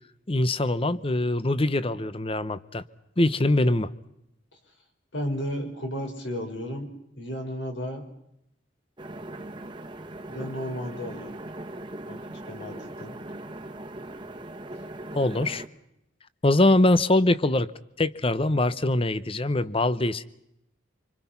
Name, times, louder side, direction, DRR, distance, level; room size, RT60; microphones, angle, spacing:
voice 1, 0.3-2.8 3.2-3.9 15.1-15.6 16.4-17.7 18.0-20.2, left 2 dB, 30° left, 0.9 m, -23 dB
voice 2, 5.1-6.9 7.2-8.0 10.3-11.4 12.1-12.2 12.4-13.2, equal, 65° left, 5.1 m, -33 dB
sound 1, 9.0-15.7, right 1 dB, 25° right, 1.4 m, -40 dB
26.5 x 25.5 x 5.9 m
head